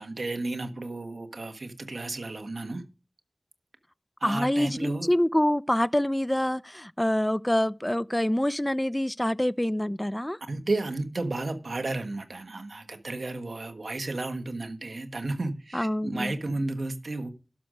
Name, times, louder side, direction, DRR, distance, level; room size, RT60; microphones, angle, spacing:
voice 1, 0.0-2.8 4.2-5.1 10.5-17.3, right 2 dB, 90° right, 1.3 m, -33 dB
voice 2, 4.2-10.4 15.7-16.3, left 1 dB, 15° left, 0.4 m, -26 dB
12.0 x 6.3 x 5.1 m
wide cardioid pair, 45°, 0 cm